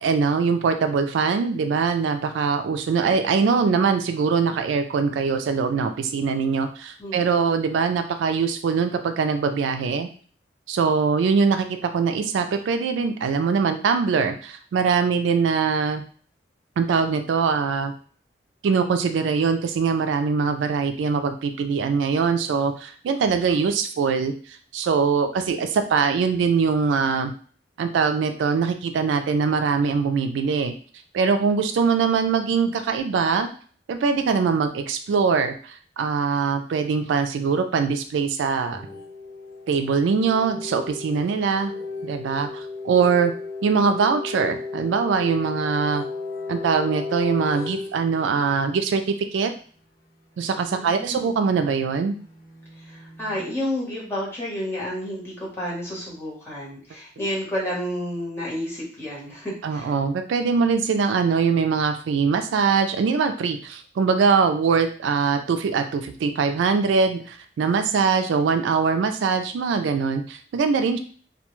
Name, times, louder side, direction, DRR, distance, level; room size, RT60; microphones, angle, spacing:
voice 1, 0.0-10.1 10.7-16.0 16.8-17.9 18.6-24.3 24.7-27.3 27.8-30.7 31.1-33.5 33.9-38.8 39.7-41.7 42.0-43.3 43.6-46.0 46.5-49.0 49.3-49.5 50.4-52.1 59.6-71.0, right 5 dB, 80° right, 7 dB, 0.3 m, -22 dB
voice 2, 7.0-7.4 50.7-51.3 52.8-59.9, equal, 15° left, -6 dB, 1.0 m, -31 dB
sound 1, 38.7-48.7 50.8-53.5, left 3 dB, 55° left, 0.8 m, -35 dB
2.3 x 2.2 x 3.0 m, 0.43 s
head